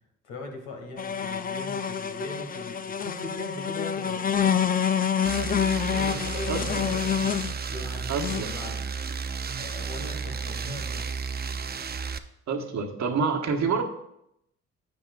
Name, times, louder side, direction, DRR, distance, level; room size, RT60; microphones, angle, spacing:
voice 1, 0.2-4.3 5.9-7.0 7.7-8.8 9.5-11.1, left 2 dB, 85° left, 2 dB, 1.7 m, -40 dB
sound 1, 1.0-7.5 8.2-8.4, left 8 dB, 30° left, 0.5 m, -27 dB
sound 2, 5.2-12.2, right 5 dB, 30° right, 0.6 m, -33 dB
voice 2, 6.5-6.9 8.1-8.7 12.5-13.8, right 5 dB, 65° right, 4 dB, 1.3 m, -28 dB
9.5 x 8.6 x 2.4 m, 0.78 s
supercardioid pair, 50°, 31 cm